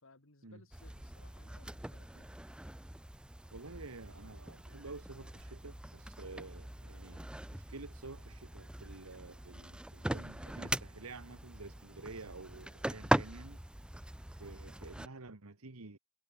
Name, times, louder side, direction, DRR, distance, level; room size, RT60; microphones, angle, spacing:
voice 1, 0.0-2.3, left 2 dB, 65° left, 2.7 m, -62 dB
sound 1, 0.7-15.1, right 1 dB, 5° right, 0.4 m, -41 dB
voice 2, 3.5-13.6 14.4-16.0, right 3 dB, 85° right, 1.5 m, -50 dB
head